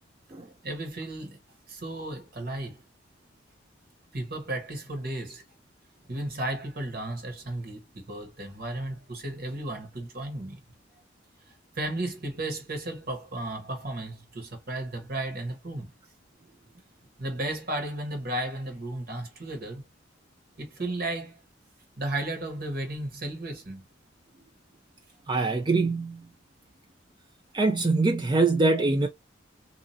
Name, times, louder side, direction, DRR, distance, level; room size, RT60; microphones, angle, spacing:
voice 1, 0.6-1.4 1.7-2.8 4.1-5.4 6.1-10.6 11.5-15.9 17.2-19.8 20.6-21.4 22.0-23.8, right 1 dB, 50° right, 1.3 m, -34 dB
voice 2, 25.3-26.3 27.5-29.1, right 3 dB, 25° right, 0.4 m, -23 dB
2.8 x 2.4 x 2.7 m
head